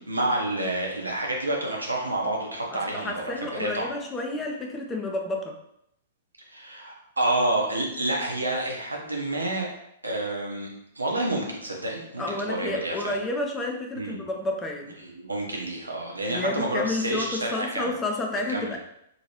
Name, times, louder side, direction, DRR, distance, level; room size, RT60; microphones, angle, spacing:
voice 1, 0.0-3.9 6.5-9.7 10.0-10.7 10.9-13.2 13.9-14.3 15.0-17.9 18.5-18.8, right 1 dB, 90° right, -1 dB, 0.7 m, -29 dB
voice 2, 2.7-5.6 12.2-15.0 16.3-18.8, left 2 dB, 15° left, 2 dB, 0.5 m, -30 dB
2.9 x 2.6 x 3.0 m, 0.76 s
figure-of-eight pair, 110°, 0 cm